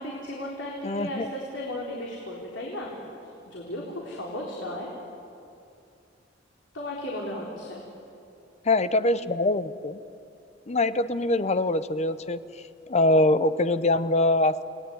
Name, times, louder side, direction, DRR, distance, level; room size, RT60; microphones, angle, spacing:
voice 1, 0.0-3.0 3.5-4.9 6.7-7.8, left 1 dB, 85° left, -3 dB, 3.8 m, -35 dB
voice 2, 0.8-1.3 8.6-10.0 10.7-12.4 12.9-14.6, left 2 dB, 35° left, 13 dB, 0.8 m, -23 dB
29.5 x 19.0 x 9.5 m, 2.6 s
head